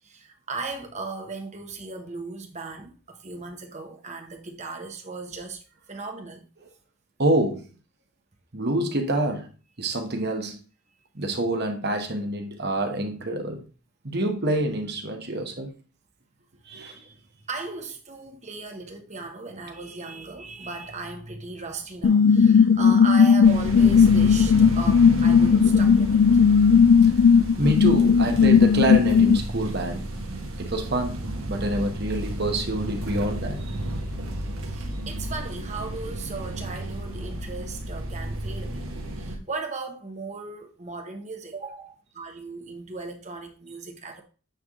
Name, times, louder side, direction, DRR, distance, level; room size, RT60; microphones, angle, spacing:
voice 1, 0.0-5.6 5.9-6.5 17.4-26.5 33.9-38.8 39.1-44.2, right 3 dB, 35° right, 1.1 m, -37 dB
voice 2, 7.2-7.7 8.5-9.5 9.8-10.6 11.1-13.6 14.0-15.7 16.7-17.0 27.0-27.1 27.6-30.1 30.6-33.6, right 1 dB, 50° right, 1.3 m, -26 dB
sound 1, 22.0-29.4, left 6 dB, 55° left, 0.3 m, -16 dB
sound 2, 23.4-39.4, right 1 dB, 80° right, 1.7 m, -33 dB
9.1 x 3.6 x 3.7 m
head